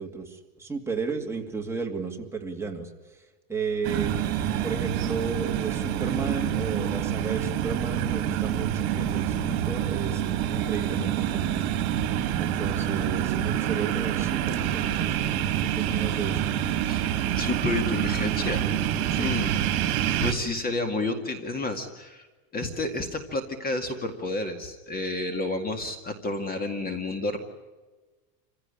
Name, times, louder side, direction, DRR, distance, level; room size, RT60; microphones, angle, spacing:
voice 1, 0.0-2.9 3.5-4.1 4.6-11.8 12.4-15.3 15.6-16.4 19.1-19.4, right 4 dB, 5° right, 1 dB, 2.4 m, -33 dB
sound 1, 3.8-20.3, right 10 dB, 60° right, 2.7 m, -27 dB
voice 2, 17.4-18.7 19.1-19.6 20.2-22.3 22.5-27.4, left 2 dB, 20° left, 7 dB, 2.1 m, -30 dB
27.5 x 16.5 x 9.9 m, 1.2 s
supercardioid pair, 150°, 42 cm